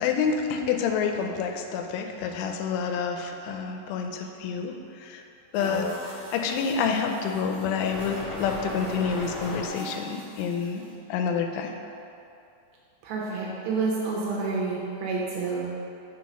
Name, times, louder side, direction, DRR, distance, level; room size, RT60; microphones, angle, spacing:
voice 1, 0.0-5.2 5.5-10.8 11.1-11.7, left 6 dB, 90° left, 4 dB, 3.0 m, -28 dB
sound 1, 5.5-11.0, equal, 55° right, 2.3 m, -42 dB
sound 2, 6.0-9.7, left 1 dB, 60° left, 2.6 m, -38 dB
voice 2, 13.0-15.7, right 4 dB, 80° right, -4 dB, 2.7 m, -29 dB
6.5 x 4.7 x 5.3 m, 2.7 s
omnidirectional pair, 5.5 m